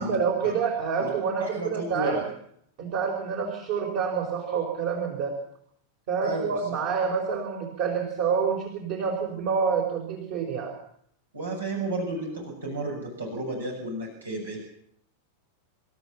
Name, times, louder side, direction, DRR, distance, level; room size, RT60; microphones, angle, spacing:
voice 1, 0.0-2.2 2.8-5.4 6.1-10.7, right 6 dB, 45° right, 1 dB, 4.7 m, -27 dB
voice 2, 1.4-2.3 6.2-6.5 11.3-14.6, right 2 dB, 75° right, 0 dB, 6.5 m, -32 dB
27.5 x 13.5 x 7.3 m, 0.69 s
figure-of-eight pair, 90°, 0 cm